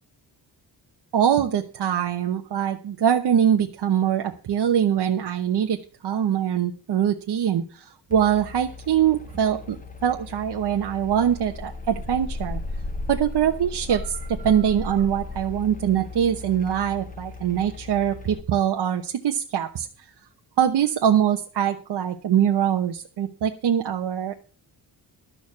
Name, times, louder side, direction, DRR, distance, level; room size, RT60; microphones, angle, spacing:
voice 1, 1.1-5.8 6.0-9.8 10.0-12.6 13.1-19.9 20.6-24.3, right 9 dB, 65° right, 3 dB, 1.1 m, -23 dB
sound 1, 8.1-18.4, left 3 dB, 20° left, 1.0 m, -36 dB
12.5 x 6.7 x 7.3 m, 0.38 s
wide cardioid pair, 150°, 44 cm